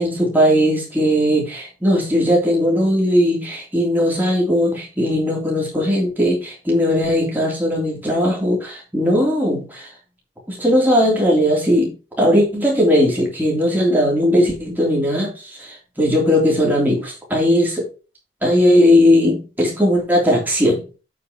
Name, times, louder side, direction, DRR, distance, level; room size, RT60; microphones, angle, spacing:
voice 1, 0.0-9.9 10.5-17.8 18.4-20.8, equal, 10° right, -2 dB, 3.2 m, -18 dB
8.5 x 4.9 x 4.7 m, 0.34 s
head